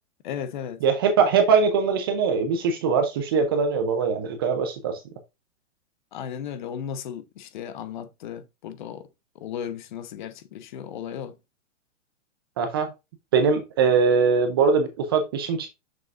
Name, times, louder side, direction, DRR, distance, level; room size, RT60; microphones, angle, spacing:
voice 1, 0.2-0.8 6.1-9.1 9.4-11.3, left 8 dB, 40° left, 0.9 m, -35 dB
voice 2, 0.8-5.0 12.6-12.9 13.3-15.8, right 5 dB, 20° right, 0.5 m, -22 dB
6.6 x 6.4 x 2.5 m
hypercardioid pair, 165°, 38 cm